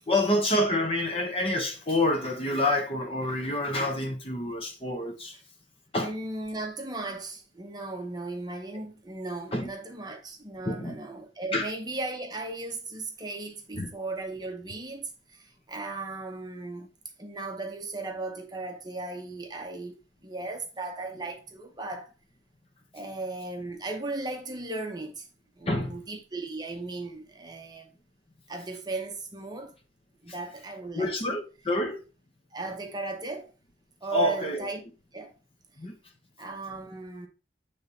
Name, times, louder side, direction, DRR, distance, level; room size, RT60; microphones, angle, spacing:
voice 1, 0.1-5.4 5.9-6.1 9.5-9.7 10.7-11.0 11.5-11.7 13.7-13.9 25.7-25.9 30.9-32.0 34.1-34.7 35.8-36.0, left 1 dB, 30° left, 1.0 m, -27 dB
voice 2, 6.0-20.0 20.2-22.1 22.9-25.3 25.6-27.9 28.5-29.7 30.2-31.4 32.5-33.5 34.0-34.8 35.1-35.3 36.4-37.3, right 2 dB, 20° right, 0.8 m, -36 dB
8.5 x 3.4 x 4.1 m
head